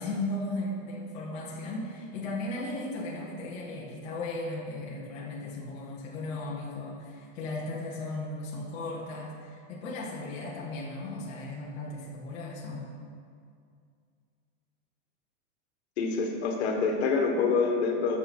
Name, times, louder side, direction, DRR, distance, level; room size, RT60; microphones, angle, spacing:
voice 1, 0.0-12.9, left 2 dB, 15° left, -6 dB, 0.8 m, -36 dB
voice 2, 16.0-18.2, left 4 dB, 55° left, 2 dB, 1.5 m, -26 dB
8.6 x 6.8 x 6.0 m, 2.3 s
supercardioid pair, 180°, 38 cm